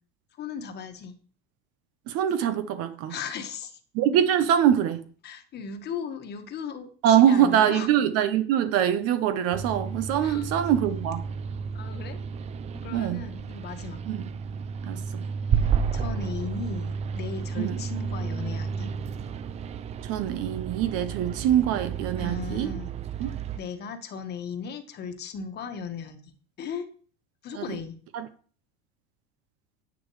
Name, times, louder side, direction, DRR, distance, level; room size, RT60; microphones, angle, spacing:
voice 1, 0.4-1.1 3.1-3.8 5.2-7.9 10.2-10.5 11.7-12.2 12.7-14.0 15.9-18.9 22.2-22.9 23.6-26.2 26.6-26.9 27.4-28.0, left 6 dB, 35° left, 1.5 m, -37 dB
voice 2, 2.1-3.1 3.9-5.0 7.0-11.3 12.9-13.2 14.1-14.2 14.8-15.2 17.6-17.8 20.0-22.7 23.2-23.3 27.5-27.6 28.1-28.3, right 10 dB, 50° right, 0.9 m, -23 dB
sound 1, 9.5-23.6, right 6 dB, 20° right, 0.4 m, -32 dB
10.0 x 9.2 x 3.2 m
supercardioid pair, 145°, 31 cm